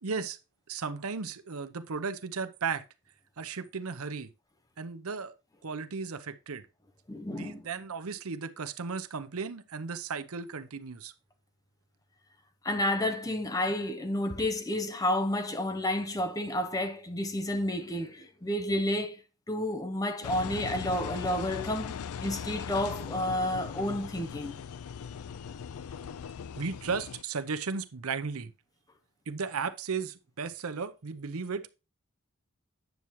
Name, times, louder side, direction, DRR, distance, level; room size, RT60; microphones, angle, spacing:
voice 1, 0.0-0.4 0.7-2.8 3.4-4.3 4.8-5.3 5.6-6.7 7.3-11.1 26.6-28.5 29.3-31.7, right 5 dB, 75° right, 0.7 m, -35 dB
voice 2, 7.1-7.6 12.6-19.2 19.5-24.5, left 1 dB, 15° left, 0.7 m, -31 dB
Engine, 20.2-27.2, left 7 dB, 75° left, 0.4 m, -39 dB
9.2 x 7.0 x 3.0 m
head